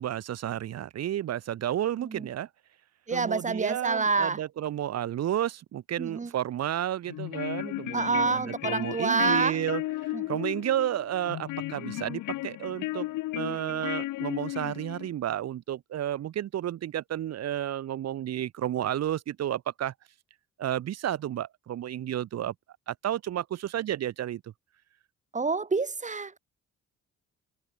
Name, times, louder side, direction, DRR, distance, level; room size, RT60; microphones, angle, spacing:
voice 1, 0.0-2.5 3.1-9.8 10.3-13.1 13.4-19.9 20.6-22.5 22.9-24.5, right 11 dB, 60° right, 0.9 m, -31 dB
voice 2, 3.1-4.4 6.0-6.3 7.9-9.6 10.1-10.2 25.3-26.4, right 4 dB, 25° right, 1.6 m, -27 dB
sound 1, 7.1-15.1, left 17 dB, 85° left, 1.2 m, -35 dB
cardioid pair, 90°, 30 cm